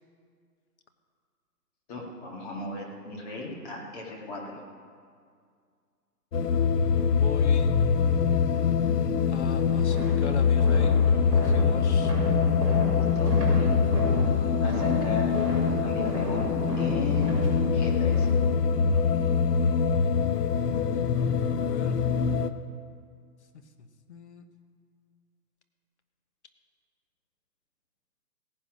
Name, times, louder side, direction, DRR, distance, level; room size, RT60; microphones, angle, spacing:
voice 1, 1.9-4.6 12.9-13.8 14.6-15.4 15.8-17.5 17.7-18.3, left 1 dB, 25° left, -1 dB, 2.0 m, -37 dB
sound 1, 6.3-22.5, left 6 dB, 70° left, 1.0 m, -24 dB
voice 2, 7.1-7.7 9.3-11.0 11.3-12.1 20.4-21.1 21.4-22.0 23.5-24.4, left 6 dB, 45° left, 7 dB, 1.2 m, -41 dB
sound 2, 9.5-18.3, equal, 10° right, 4.9 m, -32 dB
16.5 x 10.0 x 6.2 m, 2.2 s
hypercardioid pair, 160°, 49 cm